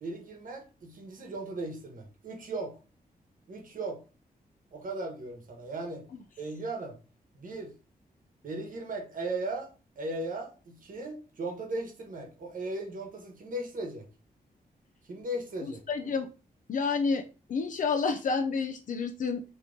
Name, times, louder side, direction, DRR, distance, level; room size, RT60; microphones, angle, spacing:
voice 1, 0.0-2.8 3.5-4.0 4.7-6.0 6.4-7.0 7.3-7.7 8.4-14.0 15.1-15.8, right 2 dB, 55° right, 3 dB, 1.1 m, -37 dB
voice 2, 15.9-16.3 16.7-17.2 17.5-19.4, left 5 dB, 55° left, 5 dB, 0.4 m, -29 dB
3.7 x 3.0 x 3.6 m, 0.33 s
wide cardioid pair, 165°, 16 cm